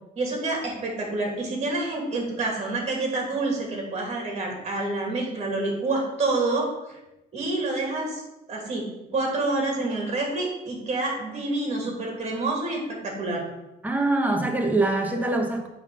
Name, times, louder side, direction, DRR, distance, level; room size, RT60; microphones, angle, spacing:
voice 1, 0.2-7.0 7.3-8.2 8.5-8.9 9.1-13.4, right 2 dB, 40° right, 0 dB, 2.5 m, -28 dB
voice 2, 13.8-15.7, right 2 dB, 10° right, 2 dB, 1.3 m, -24 dB
8.0 x 3.9 x 5.4 m, 0.97 s
cardioid pair, 110°, 17 cm